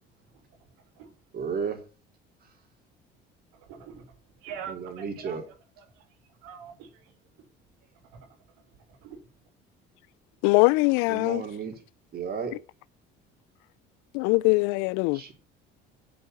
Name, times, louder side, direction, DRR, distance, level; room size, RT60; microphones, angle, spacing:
voice 1, 1.3-1.8 4.7-5.4 11.1-11.8 12.1-12.5 15.1-15.3, right 6 dB, 50° right, 4.0 m, -33 dB
voice 2, 3.5-4.1 4.4-6.0 6.4-7.1 8.0-8.2 9.0-9.2, right 7 dB, 90° right, 2.8 m, -44 dB
voice 3, 10.4-11.4 14.1-15.2, left 25 dB, 85° left, 0.5 m, -22 dB
8.8 x 7.8 x 6.9 m
cardioid pair, 100°, 21 cm